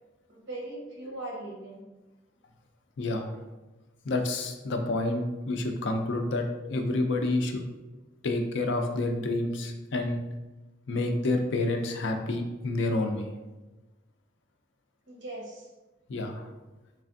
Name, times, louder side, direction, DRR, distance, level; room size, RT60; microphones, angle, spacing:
voice 1, 0.3-1.8 15.1-15.7, right 2 dB, 65° right, -2 dB, 1.0 m, -39 dB
voice 2, 3.0-3.4 4.0-7.6 8.2-10.2 10.9-13.3 16.1-16.5, left 2 dB, 65° left, 4 dB, 0.4 m, -29 dB
3.3 x 3.2 x 2.5 m, 1.1 s
head